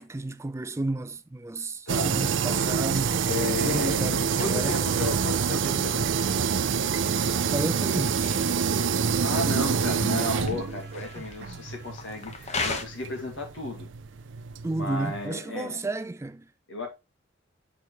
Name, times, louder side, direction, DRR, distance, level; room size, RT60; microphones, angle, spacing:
voice 1, 0.0-3.2 3.6-4.8 7.5-8.4 14.6-16.5, right 2 dB, 15° right, 0.4 m, -32 dB
voice 2, 1.9-2.2 3.2-6.5 9.2-13.9 14.7-15.8 16.7-16.9, left 2 dB, 85° left, 1.8 m, -34 dB
sound 1, 1.9-15.3, right 6 dB, 75° right, 0.4 m, -27 dB
sound 2, 3.9-11.9, right 2 dB, 55° right, 0.9 m, -44 dB
sound 3, 4.9-12.8, left 3 dB, 35° left, 0.9 m, -40 dB
6.5 x 4.7 x 3.2 m
head